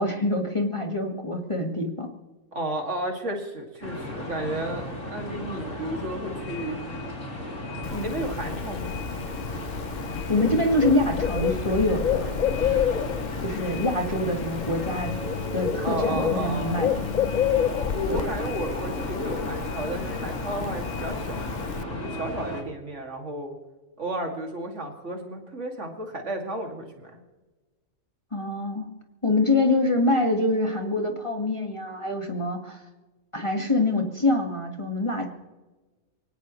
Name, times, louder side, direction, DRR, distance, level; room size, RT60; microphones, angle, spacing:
voice 1, 0.0-2.1 10.3-12.3 13.4-15.1 15.5-16.9 18.1-18.3 28.3-28.9 29.2-32.8 33.3-35.3, left 2 dB, 20° left, 2 dB, 1.7 m, -25 dB
voice 2, 2.5-6.8 7.9-8.9 15.8-16.8 17.9-21.4 21.9-23.6 24.0-27.2, right 1 dB, 55° right, 2 dB, 2.7 m, -33 dB
sound 1, 3.8-22.6, left 1 dB, 60° left, 3.6 m, -35 dB
Bird, 7.8-21.8, left 9 dB, 75° left, 0.4 m, -30 dB
25.0 x 17.5 x 3.2 m, 1.2 s
omnidirectional pair, 1.5 m